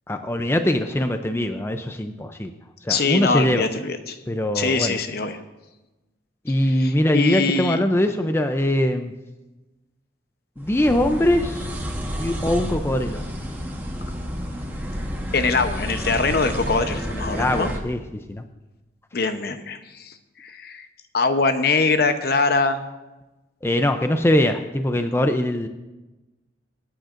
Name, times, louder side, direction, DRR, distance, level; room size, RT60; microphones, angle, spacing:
voice 1, 0.1-2.5 2.8-3.6 4.3-4.9 6.4-9.1 10.6-11.7 12.2-13.2 17.3-18.0 18.3-18.4 23.6-25.7, left 1 dB, 15° left, 7 dB, 0.5 m, -22 dB
voice 2, 2.9-4.2 4.5-5.4 6.8-7.8 15.3-17.7 19.1-20.1 20.4-20.9 21.1-22.8, left 4 dB, 55° left, 8 dB, 0.8 m, -22 dB
sound 1, 10.6-17.8, equal, 10° right, 1.2 m, -30 dB
26.0 x 9.0 x 2.5 m, 1.1 s
head